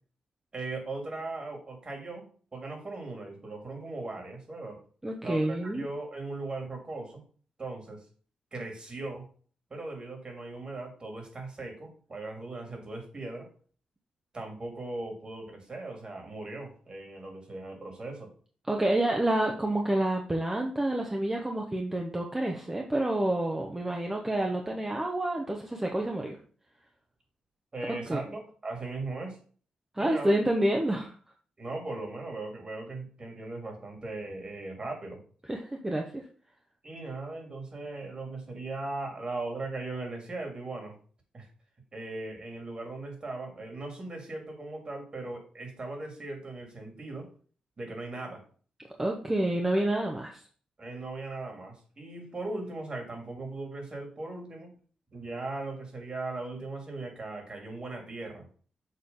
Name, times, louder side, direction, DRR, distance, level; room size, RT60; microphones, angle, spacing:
voice 1, 0.5-2.2 2.5-4.8 5.2-7.2 7.6-8.0 8.5-9.3 9.7-13.5 14.3-18.3 27.7-29.4 30.0-30.3 31.6-35.2 36.8-41.0 41.3-41.5 41.9-47.3 47.8-48.4 50.8-54.7 55.1-58.5, right 2 dB, 40° right, 2 dB, 2.6 m, -38 dB
voice 2, 5.0-5.8 18.7-26.4 28.1-28.2 29.9-31.1 35.5-36.2 49.0-50.4, right 1 dB, 15° right, 2 dB, 0.9 m, -28 dB
6.7 x 3.2 x 5.4 m, 0.43 s
cardioid pair, 75°, 2 cm